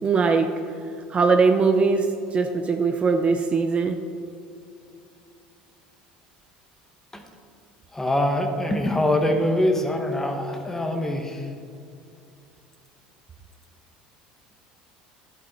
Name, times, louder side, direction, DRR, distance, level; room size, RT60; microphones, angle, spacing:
voice 1, 0.0-0.5 1.1-4.0, right 4 dB, 30° right, 6 dB, 0.7 m, -21 dB
voice 2, 7.9-11.5, left 1 dB, 10° left, 4 dB, 1.5 m, -24 dB
11.5 x 8.5 x 4.1 m, 2.5 s
hypercardioid pair, 80°, 4 cm